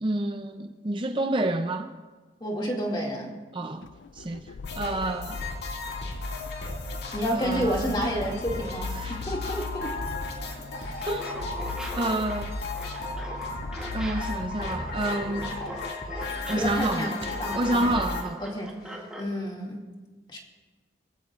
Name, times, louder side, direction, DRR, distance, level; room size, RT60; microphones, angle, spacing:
voice 1, 0.0-1.9 3.5-3.9 4.1-4.4 4.8-5.4 7.3-7.9 9.0-9.2 11.0-11.3 12.0-12.5 13.9-15.6 16.5-17.1 17.5-18.4, right 1 dB, 30° right, 6 dB, 0.5 m, -28 dB
voice 2, 2.4-3.3 7.1-10.0 10.7-11.0 16.5-17.9 18.4-19.8 20.3-20.4, equal, 25° left, -1 dB, 2.3 m, -30 dB
sound 1, 3.8-15.9, left 4 dB, 85° left, 0.4 m, -40 dB
sound 2, 4.6-18.2, left 2 dB, 65° left, 2.3 m, -35 dB
Laughter, 11.0-19.3, equal, 5° right, 2.2 m, -41 dB
22.5 x 15.5 x 2.5 m, 1.3 s
head